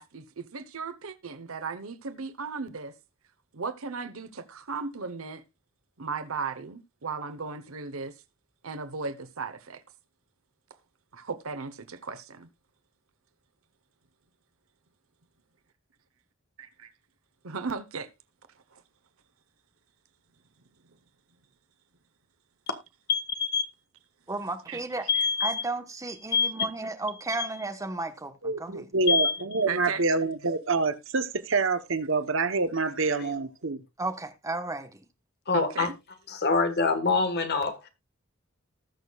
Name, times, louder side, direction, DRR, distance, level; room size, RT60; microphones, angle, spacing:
voice 1, 0.0-2.9 3.5-5.4 6.0-8.1 8.6-9.8 11.1-12.5 16.6-16.7 17.4-18.1 18.7-18.8 24.7-24.8 25.1-25.3 29.7-30.0 35.5-36.0, right 5 dB, 85° right, 1.0 m, -36 dB
voice 2, 23.1-23.6 25.1-25.6 26.3-26.7 27.4-27.5 29.1-29.3 33.2-33.3 35.5-35.9 36.3-37.9, left 4 dB, 50° left, 1.5 m, -25 dB
voice 3, 24.3-25.1 25.4-28.9 34.0-35.0, right 2 dB, 15° right, 1.1 m, -34 dB
voice 4, 28.4-33.8, right 3 dB, 65° right, 1.0 m, -27 dB
19.0 x 6.4 x 2.4 m
head